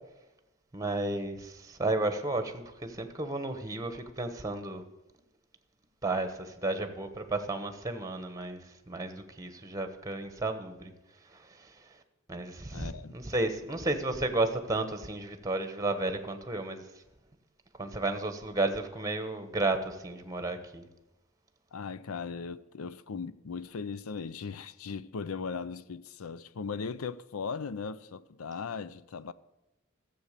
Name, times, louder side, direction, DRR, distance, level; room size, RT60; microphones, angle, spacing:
voice 1, 0.7-4.8 6.0-10.9 11.3-11.9 12.3-16.8 17.8-20.9, right 2 dB, 15° right, 1.1 m, -33 dB
voice 2, 12.7-13.2 21.7-29.3, left 5 dB, 75° left, 0.5 m, -38 dB
14.0 x 7.7 x 6.7 m
head